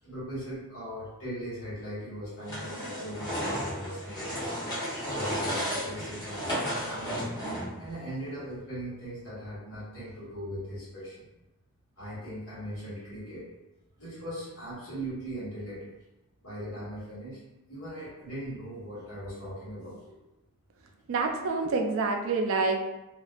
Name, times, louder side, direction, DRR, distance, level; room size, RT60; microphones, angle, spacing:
voice 1, 0.0-4.4 5.0-6.5 6.8-7.4 7.8-11.3 12.0-13.5 14.0-15.9 16.4-17.4 17.7-20.2 21.6-21.7, equal, 85° left, -9 dB, 1.4 m, -39 dB
sound 1, 2.4-7.9, equal, 20° left, 0.8 m, -33 dB
voice 2, 21.1-22.8, right 3 dB, 65° right, 3 dB, 0.3 m, -27 dB
2.5 x 2.2 x 2.4 m, 0.97 s
head